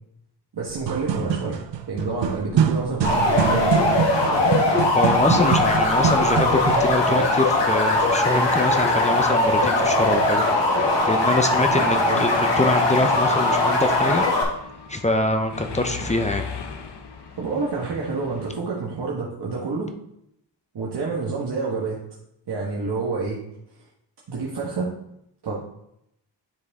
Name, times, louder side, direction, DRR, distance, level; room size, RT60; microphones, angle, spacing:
voice 1, 0.5-1.6 1.9-3.9 4.3-4.5 11.6-12.3 17.4-19.9 20.7-22.0 22.5-23.4 24.3-24.9 25.4-25.6, right 4 dB, 65° right, -4 dB, 1.5 m, -28 dB
sound 1, 0.7-7.0, right 8 dB, 85° right, 0.7 m, -25 dB
sound 2, 3.0-14.4, left 2 dB, 85° left, 1.9 m, -20 dB
voice 2, 4.9-10.5 11.0-14.2 14.9-16.4, left 2 dB, 15° left, 6 dB, 0.6 m, -24 dB
Mechanisms, 12.7-18.6, left 5 dB, 70° left, 1.0 m, -38 dB
9.7 x 4.9 x 3.6 m, 0.77 s
wide cardioid pair, 115°, 43 cm